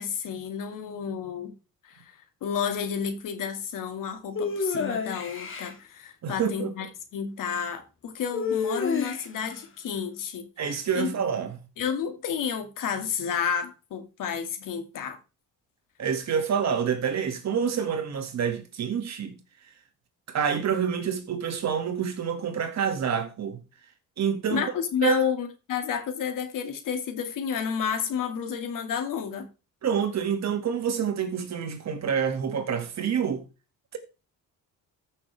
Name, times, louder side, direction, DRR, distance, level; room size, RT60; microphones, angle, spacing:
voice 1, 0.0-1.5 1.8-2.1 2.4-6.9 7.1-10.5 10.9-11.1 11.8-15.2 24.5-29.5, left 7 dB, 65° left, 2.2 m, -31 dB
sound 1, 4.4-5.7 8.3-9.5, left 5 dB, 35° left, 2.3 m, -29 dB
voice 2, 6.2-6.7 10.6-11.6 16.0-19.4 20.3-23.6 24.2-24.7 25.0-25.2 29.8-33.5, right 7 dB, 50° right, 2.2 m, -27 dB
14.0 x 6.3 x 3.4 m
cardioid pair, 120°, 34 cm